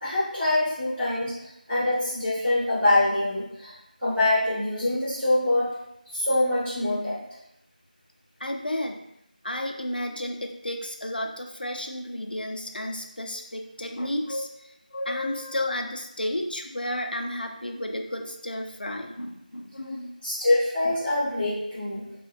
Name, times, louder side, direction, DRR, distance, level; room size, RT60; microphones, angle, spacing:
voice 1, 0.0-3.7 4.0-5.7 6.1-7.2 20.2-22.0, left 1 dB, 5° right, -17 dB, 0.4 m, -24 dB
voice 2, 8.4-9.0 9.4-20.2 20.9-21.0, left 1 dB, 80° left, 3 dB, 0.3 m, -32 dB
2.6 x 2.1 x 2.4 m, 0.80 s
figure-of-eight pair, 170°, 5 cm